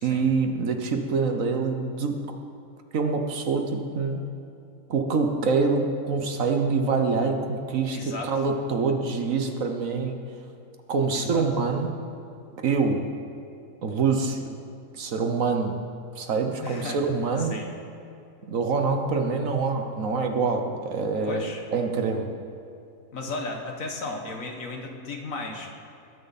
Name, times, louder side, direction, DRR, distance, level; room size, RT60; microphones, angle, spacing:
voice 1, 0.0-2.2 2.9-4.2 4.9-10.2 10.9-11.9 12.6-13.1 13.8-14.5 14.9-15.8 16.2-17.6 18.4-21.5 21.7-22.3, right 4 dB, 60° right, 5 dB, 1.4 m, -25 dB
voice 2, 7.9-8.3 11.1-11.4 16.6-17.0 17.4-17.7 21.2-21.6 23.1-25.7, left 3 dB, 60° left, 3 dB, 1.8 m, -35 dB
20.5 x 10.5 x 4.2 m, 2.7 s
omnidirectional pair, 1.6 m